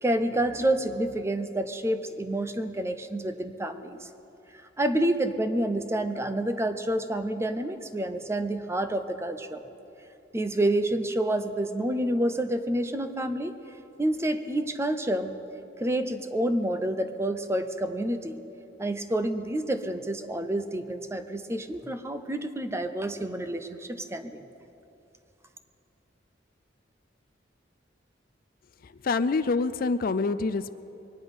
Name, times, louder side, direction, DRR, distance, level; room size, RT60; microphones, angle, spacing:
voice 1, 0.0-4.1 4.8-9.6 10.3-13.6 14.0-15.4 15.8-18.4 18.8-24.5, right 1 dB, 15° right, 9 dB, 0.6 m, -28 dB
voice 2, 28.8-30.7, left 4 dB, 50° left, 13 dB, 0.4 m, -26 dB
23.0 x 9.8 x 5.4 m, 2.9 s
head